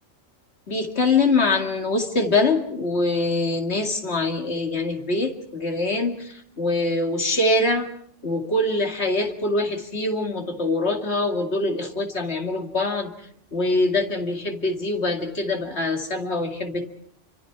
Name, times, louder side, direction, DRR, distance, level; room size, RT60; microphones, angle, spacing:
voice 1, 0.7-7.9 8.2-13.1 13.5-16.9, left 2 dB, 60° left, 4 dB, 2.6 m, -24 dB
29.0 x 25.0 x 4.7 m, 0.64 s
omnidirectional pair, 1.3 m